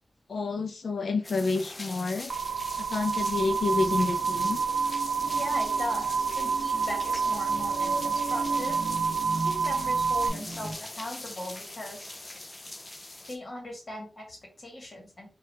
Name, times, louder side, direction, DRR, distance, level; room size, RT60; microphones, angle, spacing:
voice 1, 0.3-2.3 2.8-4.6, left 3 dB, 80° left, 8 dB, 0.5 m, -29 dB
sound 1, 1.2-13.4, left 2 dB, 30° left, 0.5 m, -42 dB
sound 2, 2.3-10.3, right 5 dB, 80° right, 0.4 m, -28 dB
sound 3, 3.4-10.7, right 2 dB, 40° right, 0.7 m, -39 dB
voice 2, 5.4-8.8 9.4-12.2 13.3-15.3, left 1 dB, 50° left, 0 dB, 1.4 m, -38 dB
2.8 x 2.4 x 3.3 m, 0.33 s
wide cardioid pair, 100°, 0 cm